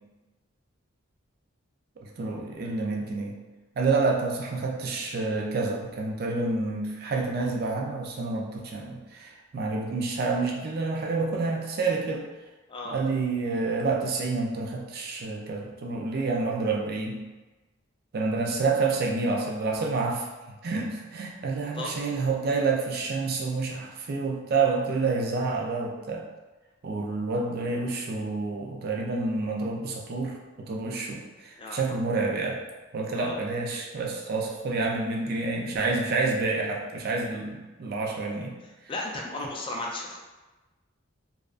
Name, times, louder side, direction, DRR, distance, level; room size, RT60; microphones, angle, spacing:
voice 1, 2.0-3.4 3.8-12.2 12.8-17.2 18.1-20.3 20.6-26.2 26.8-32.6 32.9-38.5, right 3 dB, 50° right, 0 dB, 0.4 m, -28 dB
voice 2, 21.6-22.0 31.6-32.0 33.1-33.3 38.9-40.2, left 2 dB, 25° left, -1 dB, 0.3 m, -35 dB
2.6 x 2.4 x 2.4 m, 1.2 s
head